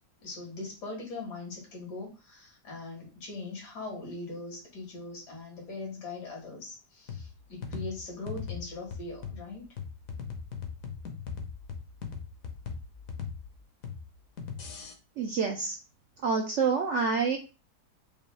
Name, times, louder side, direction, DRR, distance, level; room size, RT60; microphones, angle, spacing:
voice 1, 0.2-9.7, left 2 dB, 85° left, -1 dB, 2.3 m, -41 dB
sound 1, 7.1-14.9, left 6 dB, 60° left, 1.1 m, -40 dB
voice 2, 15.2-15.8 16.2-17.4, right 5 dB, 70° right, 3 dB, 0.7 m, -27 dB
5.1 x 2.3 x 3.2 m, 0.31 s
omnidirectional pair, 1.7 m